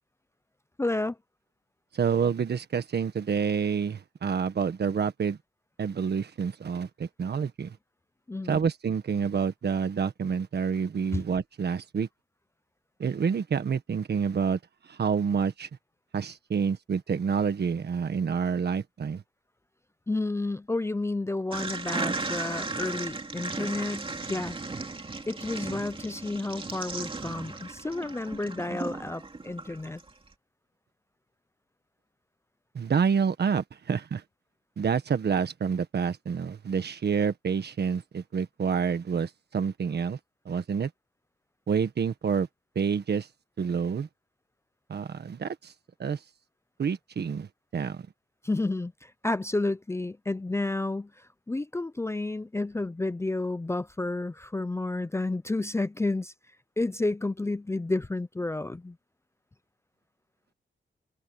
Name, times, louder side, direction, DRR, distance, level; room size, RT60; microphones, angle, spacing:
voice 1, 0.8-1.1 8.3-8.6 20.1-24.6 25.3-30.0 48.4-51.1 51.5-56.3 56.8-59.0, left 2 dB, 15° left, 0.5 m, -31 dB
voice 2, 1.9-5.4 5.8-7.7 8.5-12.1 13.0-14.6 15.0-15.7 16.1-19.2 32.7-34.2 34.8-40.2 40.4-40.9 41.7-42.5 42.7-43.3 43.6-44.1 44.9-45.5 46.0-46.2 46.8-47.5 47.7-48.0, right 6 dB, 55° right, 1.5 m, -28 dB
sound 1, 21.5-30.1, right 3 dB, 25° right, 2.6 m, -36 dB
wide cardioid pair, 155°, 20 cm